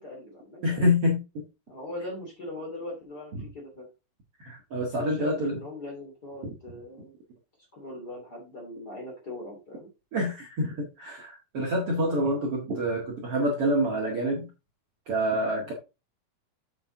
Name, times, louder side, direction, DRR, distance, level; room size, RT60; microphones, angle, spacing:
voice 1, 0.0-0.8 1.7-3.9 5.0-7.1 7.7-9.9 12.0-12.1 15.7-15.8, left 1 dB, 30° left, -1 dB, 2.8 m, -40 dB
voice 2, 0.6-1.4 4.4-5.6 10.1-14.5 15.1-15.7, equal, 45° right, -2 dB, 2.1 m, -27 dB
8.4 x 6.0 x 3.8 m, 0.27 s
omnidirectional pair, 4.6 m